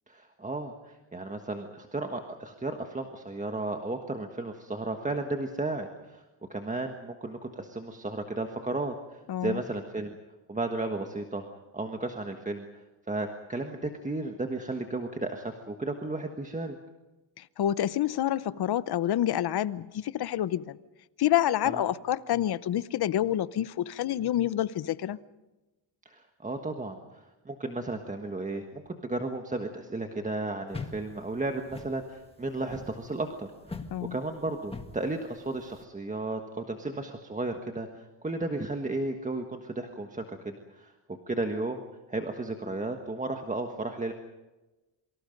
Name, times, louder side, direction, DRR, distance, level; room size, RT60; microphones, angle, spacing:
voice 1, 0.1-6.2 6.5-10.1 10.5-11.4 11.7-16.8 21.6-21.8 26.0-33.8 34.1-40.9 41.3-41.8 42.1-44.1, right 2 dB, 15° right, 1.4 m, -34 dB
voice 2, 9.3-9.6 17.6-20.8 21.2-25.2 33.9-34.2, left 12 dB, 55° left, 0.8 m, -28 dB
sound 1, 30.7-35.8, left 3 dB, 10° left, 1.7 m, -43 dB
27.5 x 24.5 x 5.3 m
cardioid pair, 130°, 47 cm